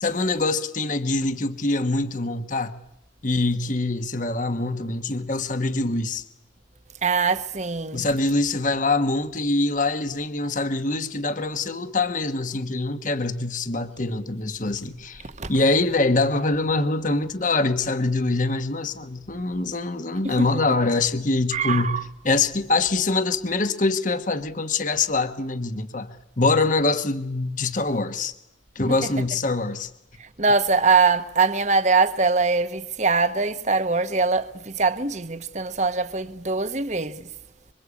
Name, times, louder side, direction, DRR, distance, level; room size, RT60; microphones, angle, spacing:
voice 1, 0.0-2.8 3.2-6.2 7.9-15.2 15.5-22.0 22.2-28.3 28.7-29.9, left 3 dB, 40° left, 1.3 m, -24 dB
voice 2, 7.0-8.0 15.2-15.5 20.2-20.5 21.5-22.0 28.9-29.1 30.2-37.3, right 4 dB, 35° right, 1.2 m, -23 dB
26.5 x 24.5 x 8.5 m
head